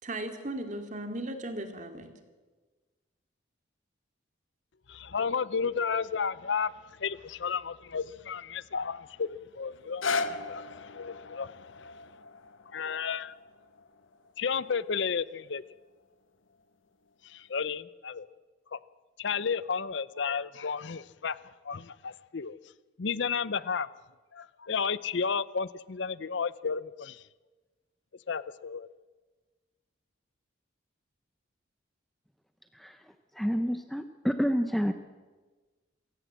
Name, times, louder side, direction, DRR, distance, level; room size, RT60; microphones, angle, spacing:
voice 1, 0.0-2.1, right 1 dB, 40° right, 7 dB, 2.5 m, -36 dB
voice 2, 4.9-6.7 7.0-11.9 12.7-13.3 14.4-15.6 17.2-18.3 18.7-18.8 19.2-21.4 21.6-22.6 23.0-23.9 24.3-27.2 28.3-28.9, left 6 dB, 65° left, 18 dB, 0.6 m, -32 dB
sound 1, 9.7-15.8 16.5-16.6, left 4 dB, 85° left, 1.1 m, -38 dB
voice 3, 33.3-34.9, equal, ahead, 8 dB, 0.7 m, -28 dB
27.5 x 16.5 x 7.6 m, 1.3 s
head